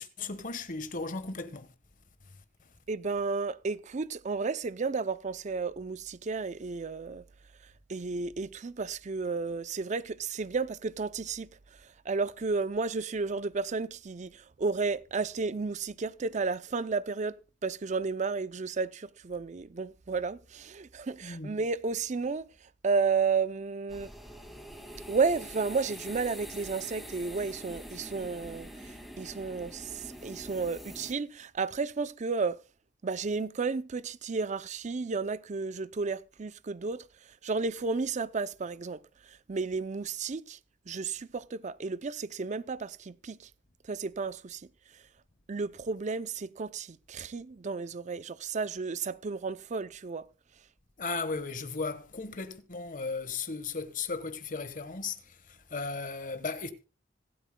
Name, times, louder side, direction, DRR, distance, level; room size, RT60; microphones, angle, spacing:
voice 1, 0.0-1.7 21.2-21.5 51.0-56.7, left 4 dB, 50° left, 1.3 m, -36 dB
voice 2, 2.9-7.2 7.9-11.5 12.1-17.3 17.6-22.4 22.8-24.1 25.1-32.6 33.0-37.0 37.4-39.0 39.3-40.6 40.9-43.5 43.9-44.6 45.5-50.2, right 4 dB, 40° right, 0.5 m, -32 dB
sound 1, 23.9-31.1, equal, ahead, 2.1 m, -45 dB
26.0 x 8.6 x 2.2 m
head